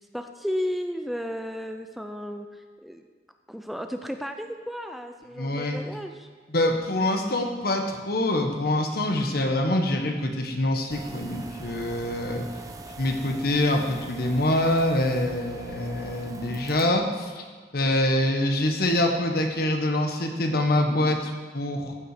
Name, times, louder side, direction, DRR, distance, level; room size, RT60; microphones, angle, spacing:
voice 1, 0.0-3.0 3.5-6.3, equal, ahead, 6 dB, 0.4 m, -33 dB
voice 2, 5.4-5.8 6.5-12.4 13.0-17.4 17.7-21.9, left 1 dB, 60° left, 4 dB, 1.4 m, -25 dB
sound 1, 10.9-16.8, right 2 dB, 20° right, 0.9 m, -41 dB
15.0 x 8.1 x 5.0 m, 1.5 s
head